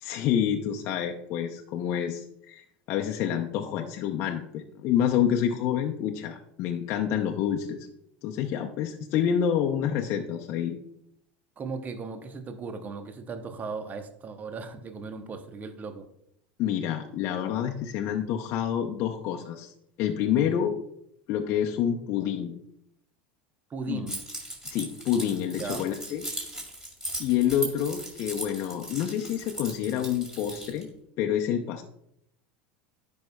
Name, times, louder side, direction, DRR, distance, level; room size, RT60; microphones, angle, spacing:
voice 1, 0.0-7.9 8.2-10.8 16.6-19.7 20.0-20.8 21.3-22.6 23.9-24.0 24.7-26.2 27.2-30.9 31.2-31.8, left 9 dB, 55° left, 2 dB, 0.6 m, -28 dB
voice 2, 11.6-16.1 23.7-24.2 25.5-25.9, right 4 dB, 30° right, 8 dB, 0.8 m, -37 dB
Keys jangling, 24.1-30.8, right 1 dB, 10° right, 2.4 m, -38 dB
10.5 x 5.3 x 2.2 m, 0.75 s
hypercardioid pair, 95°, 5 cm